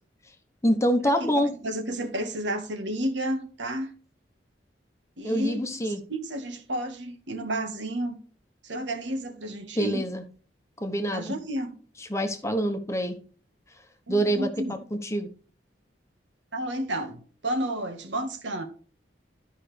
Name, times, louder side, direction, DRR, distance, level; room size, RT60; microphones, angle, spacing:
voice 1, 0.6-1.5 5.2-6.0 9.8-10.2 10.8-11.4 12.0-13.2 14.1-15.3, equal, 15° left, 1.0 m, -26 dB
voice 2, 1.2-3.9 5.2-5.6 6.1-8.2 8.6-10.0 11.1-11.7 14.1-14.7 16.5-18.6, right 1 dB, 85° right, 1.5 m, -31 dB
13.0 x 5.5 x 3.3 m
head